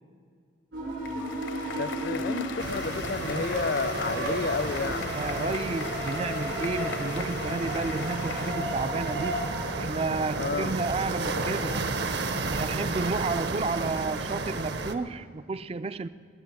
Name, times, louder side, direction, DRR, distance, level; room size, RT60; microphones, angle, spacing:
sound 1, 0.7-11.7, right 1 dB, 75° right, 3.7 m, -35 dB
sound 2, 0.8-8.5, left 5 dB, 75° left, 0.9 m, -39 dB
voice 1, 1.8-5.6 10.3-10.8, left 4 dB, 50° left, 0.4 m, -32 dB
sound 3, 2.6-14.9, right 3 dB, 60° right, 0.8 m, -33 dB
voice 2, 5.1-9.5 9.8-11.8 12.5-16.1, right 3 dB, 30° right, 0.3 m, -31 dB
21.0 x 7.8 x 7.7 m
head